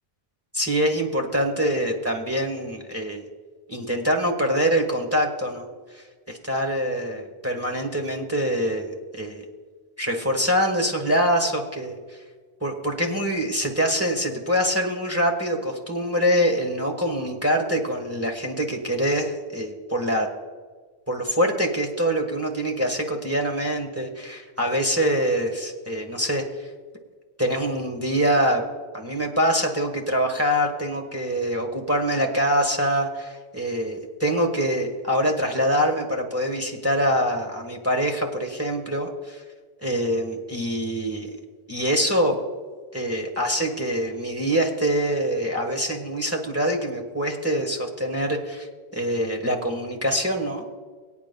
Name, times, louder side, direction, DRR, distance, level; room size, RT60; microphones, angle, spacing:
voice 1, 0.5-3.2 3.7-5.7 5.9-9.4 10.0-12.0 12.6-20.3 21.1-26.4 27.4-28.6 28.9-39.4 39.8-41.3 41.7-42.3 42.9-48.7 48.9-50.6, equal, 15° right, 1 dB, 1.3 m, -24 dB
23.5 x 9.3 x 2.2 m, 1.5 s
omnidirectional pair, 1.0 m